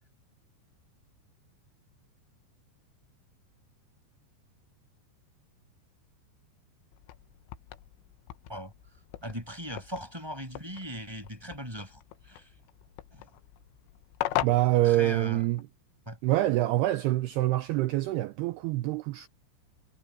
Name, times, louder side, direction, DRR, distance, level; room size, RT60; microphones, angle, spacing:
sound 1, 6.9-15.6, left 15 dB, 90° left, 3.7 m, -40 dB
voice 1, 9.2-12.5 13.1-13.3 14.8-15.4 16.1-16.2, equal, 5° right, 5.4 m, -39 dB
voice 2, 14.4-15.6 16.2-19.3, right 15 dB, 85° right, 2.3 m, -26 dB
omnidirectional pair, 5.5 m